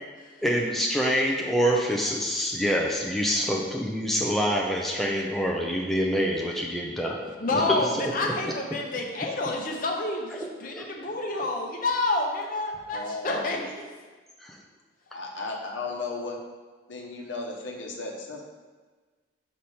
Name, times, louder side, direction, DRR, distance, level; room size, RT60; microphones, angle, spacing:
voice 1, 0.4-7.9 8.2-8.3 10.4-10.5 10.7-10.9 14.4-14.6, equal, ahead, -2 dB, 0.5 m, -26 dB
voice 2, 7.4-13.8, left 2 dB, 45° left, 0 dB, 0.8 m, -29 dB
voice 3, 12.9-13.5 15.1-16.4 16.9-18.4, left 3 dB, 70° left, 1 dB, 1.0 m, -35 dB
5.0 x 4.3 x 5.6 m, 1.4 s
head